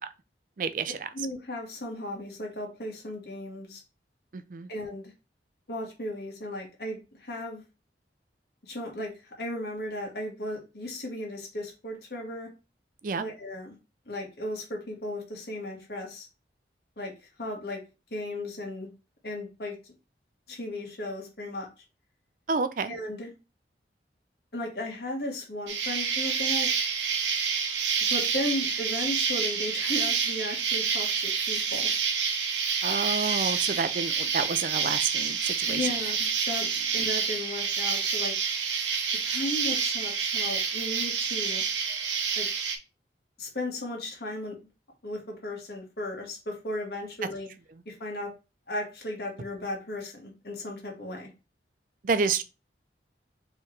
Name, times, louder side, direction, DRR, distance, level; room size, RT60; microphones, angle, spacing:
voice 1, 0.6-1.1 4.3-4.7 13.0-13.2 22.5-22.9 32.8-35.9 52.0-52.4, right 5 dB, 50° right, 0.4 m, -29 dB
voice 2, 1.1-3.8 4.7-5.1 5.7-7.6 8.6-12.5 13.2-13.8 14.1-16.3 17.0-17.1 17.4-17.8 18.1-18.9 19.2-19.7 20.5-21.7 22.9-23.3 24.5-26.7 28.1-31.9 35.6-38.3 39.1-41.6 42.4-42.5 43.4-44.5 45.0-47.5 47.8-48.3 48.7-51.3, left 1 dB, 60° left, 1.6 m, -35 dB
Insect, 25.7-42.8, right 6 dB, 90° right, 0.8 m, -28 dB
4.5 x 3.2 x 3.2 m
head